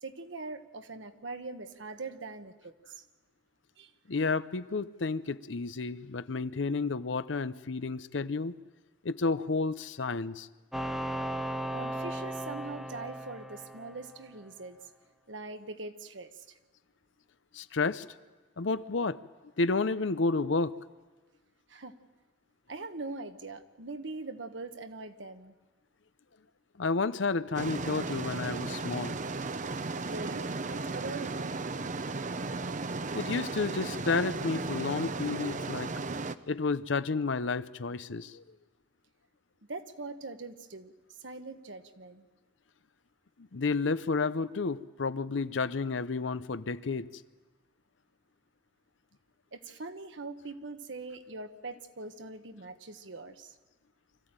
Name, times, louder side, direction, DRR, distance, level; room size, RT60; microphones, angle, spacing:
voice 1, 0.0-3.0 3.8-3.9 11.7-14.8 15.3-16.4 21.7-22.0 22.7-25.5 30.0-31.6 39.7-40.9 41.2-42.2 49.5-53.5, right 3 dB, 70° right, 8 dB, 1.3 m, -42 dB
voice 2, 4.1-8.5 9.0-10.5 17.5-18.0 18.6-19.2 19.6-20.8 26.8-29.2 33.1-35.9 36.5-38.4 43.5-47.1, left 4 dB, 70° left, 14 dB, 0.7 m, -31 dB
sound 1, 10.7-14.4, right 1 dB, ahead, 0.7 m, -36 dB
sound 2, 27.5-36.3, right 3 dB, 40° right, 0.7 m, -35 dB
24.5 x 15.5 x 8.9 m, 1.2 s
head